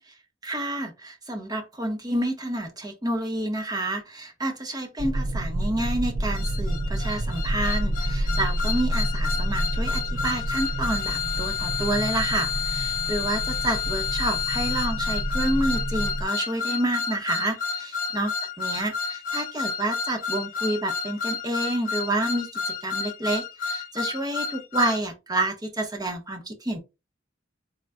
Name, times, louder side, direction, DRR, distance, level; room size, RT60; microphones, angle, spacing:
voice 1, 0.4-18.3 18.6-26.8, right 1 dB, 20° right, 0.9 m, -29 dB
sound 1, 5.0-16.2, right 1 dB, 60° right, 0.5 m, -29 dB
sound 2, 6.3-25.0, left 6 dB, 45° left, 0.5 m, -30 dB
4.0 x 3.6 x 2.2 m
head